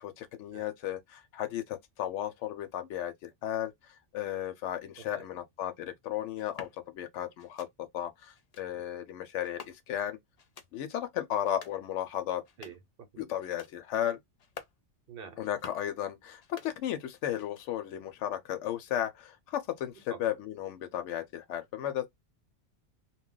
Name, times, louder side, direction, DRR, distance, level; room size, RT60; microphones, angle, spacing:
voice 1, 0.0-6.7 6.9-10.2 10.7-12.4 13.2-14.2 15.4-22.1, left 11 dB, 80° left, 0.9 m, -35 dB
sound 1, 6.3-6.8 7.4-7.7 8.3-8.7 9.4-10.0 10.4-10.7 11.3-11.8 12.3-12.9 13.4-13.8 14.3-14.8 15.3-15.9 16.3-17.1 17.3-17.9, left 6 dB, 55° left, 0.4 m, -50 dB
voice 2, 12.6-13.2 15.1-15.4 20.1-20.2, right 6 dB, 55° right, 0.9 m, -47 dB
2.3 x 2.2 x 3.7 m
omnidirectional pair, 1.2 m